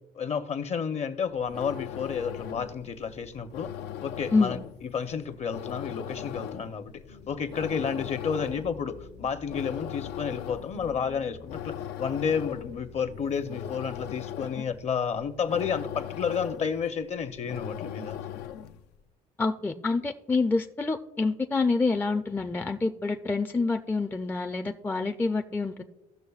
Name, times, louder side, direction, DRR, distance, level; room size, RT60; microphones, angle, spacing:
voice 1, 0.1-3.7 4.0-18.2, left 6 dB, 40° left, 9 dB, 0.7 m, -31 dB
sound 1, 1.3-18.9, left 10 dB, 80° left, 0.4 m, -40 dB
sound 2, 7.1-14.2, left 5 dB, 65° left, 1.0 m, -49 dB
voice 2, 19.4-25.8, left 3 dB, 10° left, 5 dB, 0.4 m, -27 dB
15.5 x 6.3 x 2.4 m, 0.94 s
cardioid pair, 110°, 17 cm